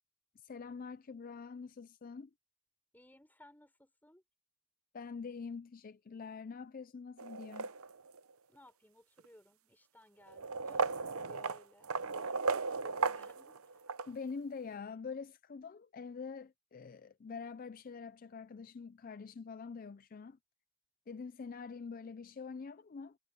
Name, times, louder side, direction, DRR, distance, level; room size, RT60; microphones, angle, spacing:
voice 1, 0.4-2.3 4.9-7.7 14.1-20.4 21.1-23.2, left 5 dB, 40° left, 0.4 m, -45 dB
voice 2, 2.9-4.2 8.5-13.8, left 1 dB, 10° left, 3.9 m, -61 dB
sound 1, 7.2-8.2 9.2-9.3 10.3-14.1, right 4 dB, 70° right, 0.8 m, -36 dB
head